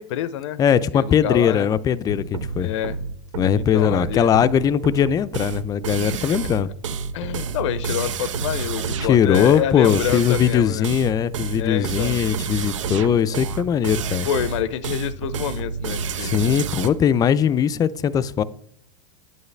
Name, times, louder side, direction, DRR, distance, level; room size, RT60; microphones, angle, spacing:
voice 1, 0.0-0.6 0.9-1.7 2.6-3.0 3.5-4.3 7.1-10.9 11.6-12.2 14.2-16.5, left 10 dB, 75° left, 0.5 m, -27 dB
voice 2, 0.6-2.7 3.3-6.7 9.0-14.3 16.2-18.4, left 8 dB, 25° left, 0.4 m, -20 dB
sound 1, 2.1-16.9, right 5 dB, 90° right, 0.7 m, -29 dB
9.1 x 8.1 x 3.3 m
hypercardioid pair, 115°, 16 cm